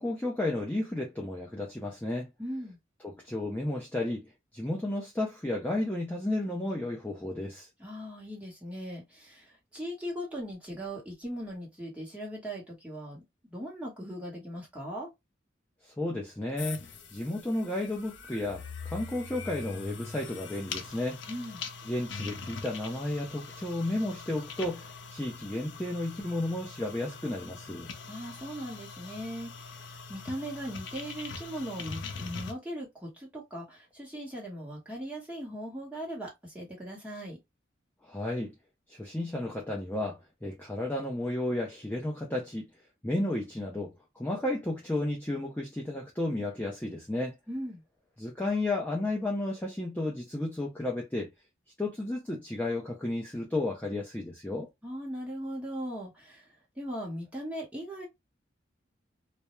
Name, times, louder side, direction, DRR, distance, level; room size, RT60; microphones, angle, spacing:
voice 1, 0.0-2.3 3.0-7.7 15.8-16.8 17.1-21.2 21.9-27.9 38.0-38.5 38.9-42.6 43.0-47.4 48.2-51.3 51.8-54.7, left 1 dB, 10° left, 0.4 m, -33 dB
voice 2, 2.4-2.8 7.8-13.2 13.5-15.1 21.3-21.6 28.1-37.4 47.5-47.8 54.8-56.5 56.8-58.1, equal, 5° right, 1.0 m, -39 dB
sound 1, 16.6-32.5, left 5 dB, 75° left, 0.5 m, -43 dB
2.2 x 2.0 x 2.9 m
head